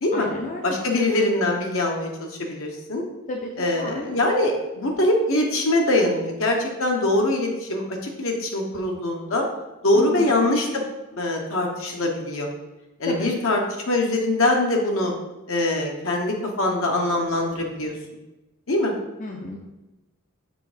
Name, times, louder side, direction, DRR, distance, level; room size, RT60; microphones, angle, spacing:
voice 1, 0.1-1.2 3.3-4.2 9.9-10.4 13.1-13.3 19.2-19.7, left 2 dB, 35° left, 0 dB, 0.6 m, -32 dB
voice 2, 0.6-3.0 3.6-9.4 9.8-10.7 11.1-12.5 13.0-15.1 15.5-17.9 18.7-18.9, left 1 dB, 65° left, 1 dB, 1.1 m, -23 dB
6.7 x 3.6 x 5.0 m, 1.0 s
head